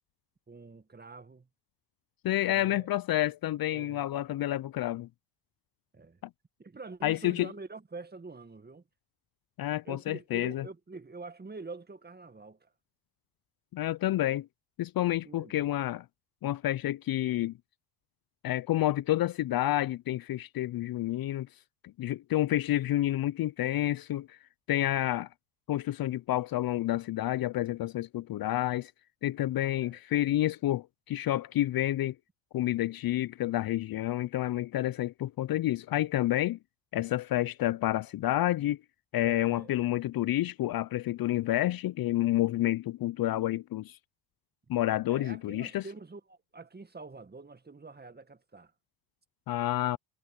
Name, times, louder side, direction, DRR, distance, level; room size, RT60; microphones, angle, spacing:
voice 1, 0.5-1.5 2.4-2.9 3.7-4.0 5.9-6.2 6.6-8.8 9.8-12.7 15.2-15.6 29.7-30.0 39.2-39.7 45.1-48.7 49.9-50.0, right 3 dB, 20° right, 2.1 m, -46 dB
voice 2, 2.2-5.1 7.0-7.5 9.6-10.6 13.7-14.5 14.8-16.0 16.4-17.5 18.4-21.5 22.0-24.4 24.7-25.3 25.7-28.9 29.2-32.1 32.5-36.6 36.9-38.8 39.1-44.0 44.7-45.8 49.5-50.0, left 14 dB, 50° left, 0.7 m, -29 dB
hypercardioid pair, 60°, 47 cm